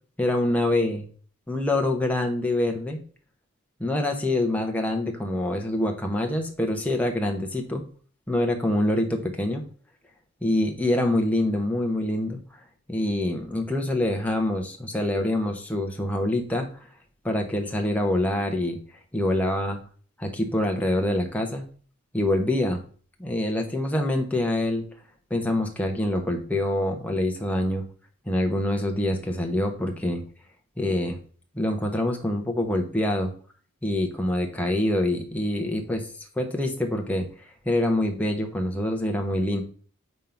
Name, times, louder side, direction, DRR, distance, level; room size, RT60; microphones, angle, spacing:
voice 1, 0.2-1.0 1.5-3.0 3.8-7.8 8.3-9.6 10.4-12.4 12.9-16.9 17.2-18.8 19.1-19.8 20.2-21.6 22.1-22.8 23.2-24.8 25.3-27.8 28.3-30.2 30.8-31.2 31.5-33.3 33.8-36.1 36.4-39.6, left 1 dB, 5° left, 3 dB, 0.8 m, -25 dB
5.3 x 3.7 x 5.7 m, 0.43 s
head